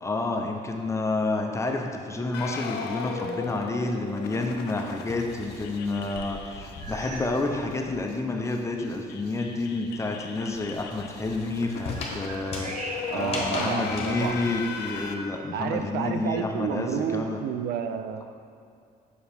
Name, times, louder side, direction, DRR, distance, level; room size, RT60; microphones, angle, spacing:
voice 1, 0.0-17.4, left 2 dB, 15° left, 2 dB, 0.6 m, -29 dB
sound 1, 2.3-7.4 7.7-7.8 8.1-8.2 8.5-15.2, left 6 dB, 75° left, 0.5 m, -37 dB
sound 2, 4.3-8.0 8.3-14.1, left 3 dB, 35° left, 1.1 m, -39 dB
sound 3, 6.8-7.4 7.7-8.1 8.7-8.8 11.2-13.5 14.1-15.1, right 2 dB, 45° right, 0.8 m, -41 dB
voice 2, 13.1-14.4 15.5-18.3, right 8 dB, 70° right, 8 dB, 0.4 m, -30 dB
6.5 x 4.6 x 3.4 m, 2.4 s
cardioid pair, 110°, 17 cm